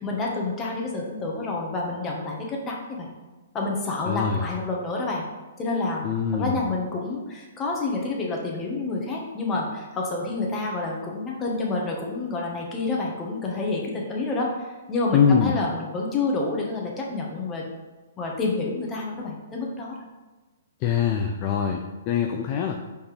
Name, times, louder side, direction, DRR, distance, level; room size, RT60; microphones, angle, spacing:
voice 1, 0.0-3.1 3.5-5.2 5.6-6.0 6.3-17.6 18.2-20.0, left 3 dB, 20° left, -1 dB, 1.7 m, -28 dB
voice 2, 4.1-4.4 6.0-6.6 15.1-15.5 20.8-22.8, left 7 dB, 35° left, 3 dB, 0.6 m, -23 dB
5.6 x 4.4 x 5.2 m, 1.2 s
hypercardioid pair, 130°, 0 cm